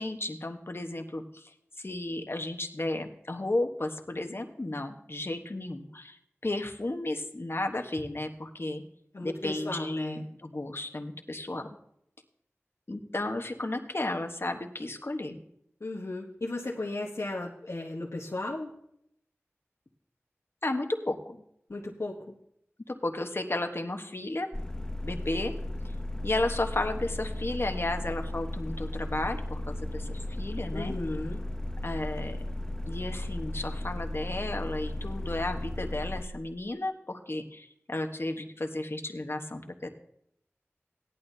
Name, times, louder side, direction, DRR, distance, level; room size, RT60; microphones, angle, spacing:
voice 1, 0.0-8.8 9.2-11.7 12.9-15.4 20.6-21.4 22.9-24.5 25.0-25.5 25.8-25.9 26.2-30.9 31.8-32.4 32.9-39.9, left 2 dB, 55° left, 5 dB, 1.1 m, -33 dB
voice 2, 9.1-10.2 15.8-18.7 21.7-22.2 30.7-31.4, left 2 dB, 75° left, -3 dB, 1.1 m, -35 dB
sound 1, 24.5-36.2, left 1 dB, 15° left, 0.7 m, -35 dB
17.0 x 11.0 x 2.7 m, 0.74 s
wide cardioid pair, 45°, 5 cm